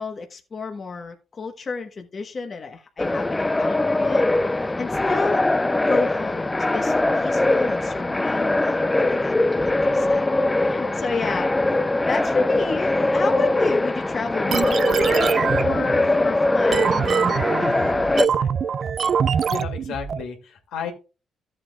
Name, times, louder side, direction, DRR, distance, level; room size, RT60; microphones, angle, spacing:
voice 1, 0.0-4.3 4.6-5.5 5.9-10.3 10.6-11.5 11.8-15.3 15.5-18.5, left 4 dB, 40° left, 1.1 m, -31 dB
sound 1, 3.0-18.3, left 2 dB, 15° left, 0.4 m, -22 dB
sound 2, 14.5-20.2, right 7 dB, 50° right, 0.4 m, -23 dB
voice 2, 19.2-20.9, left 7 dB, 85° left, 2.2 m, -33 dB
13.5 x 7.7 x 2.3 m
cardioid pair, 90°, 0 cm